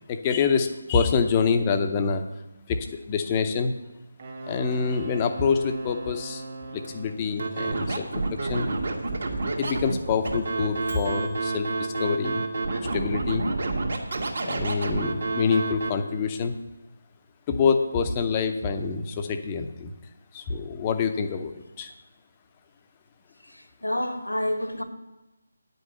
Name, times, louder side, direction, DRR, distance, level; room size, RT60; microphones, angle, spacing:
voice 1, 0.1-2.2 2.7-3.7 4.5-6.4 6.7-8.7 9.6-12.5 12.9-13.4 14.4-16.6 17.5-19.9 20.3-21.5 21.8-21.9, left 5 dB, 20° left, 0.7 m, -26 dB
Wind instrument woodwind instrument, 4.2-7.3, right 3 dB, 35° right, 1.5 m, -39 dB
Microwave oven, 6.6-11.4, right 3 dB, 80° right, 1.4 m, -45 dB
Scratching (performance technique), 7.4-15.9, right 3 dB, 50° right, 1.5 m, -28 dB
voice 2, 23.4-24.8, left 1 dB, 80° left, 1.4 m, -29 dB
9.5 x 5.4 x 7.7 m
figure-of-eight pair, 155°, 0 cm